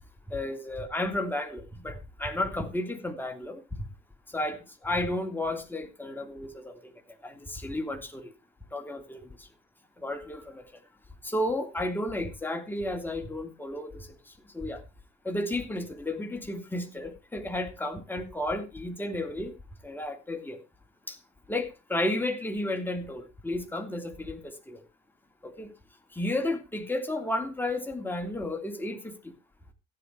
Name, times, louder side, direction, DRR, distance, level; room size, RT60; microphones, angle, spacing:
voice 1, 0.3-3.6 4.3-6.8 7.2-8.3 8.7-9.3 10.0-10.6 11.2-14.1 14.5-14.8 15.2-19.5 19.8-20.6 21.1-21.2 21.5-24.8 25.6-25.7 26.1-29.1, left 1 dB, 5° left, 3.2 m, -32 dB
15.0 x 8.2 x 4.8 m
figure-of-eight pair, 55°, 33 cm